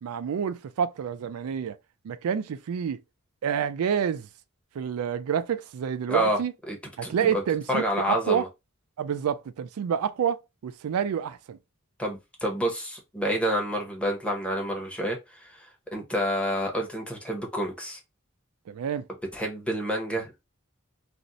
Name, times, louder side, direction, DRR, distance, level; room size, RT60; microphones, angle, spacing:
voice 1, 0.0-1.8 2.0-3.0 3.4-4.3 4.7-6.5 7.0-8.5 9.0-11.6 18.7-19.1, right 8 dB, 80° right, 0.3 m, -28 dB
voice 2, 7.0-7.4 7.7-8.5 12.0-15.6 15.9-18.0 19.3-20.4, equal, 5° left, 0.8 m, -28 dB
2.5 x 2.0 x 3.8 m
head